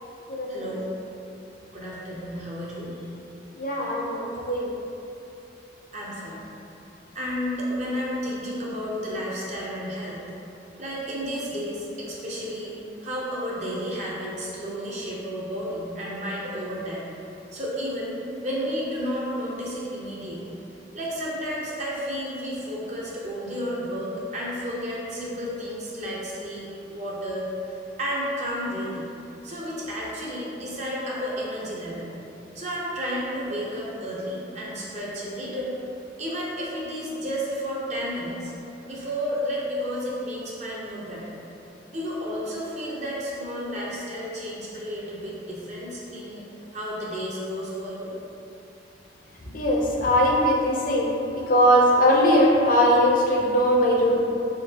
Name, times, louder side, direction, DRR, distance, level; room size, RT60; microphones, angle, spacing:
voice 1, 0.5-0.9 1.7-3.0 5.9-6.4 7.1-10.2 10.8-12.7 13.0-17.1 17.5-20.5 20.9-27.5 28.0-29.1 29.4-32.1 32.5-35.8 36.2-38.5 38.9-41.4 41.9-46.4 46.7-48.1, equal, 40° right, -5 dB, 0.6 m, -32 dB
voice 2, 3.6-4.1 4.4-4.7 49.5-51.2 51.5-54.2, equal, 50° left, -2 dB, 0.6 m, -20 dB
3.6 x 3.5 x 2.8 m, 2.8 s
head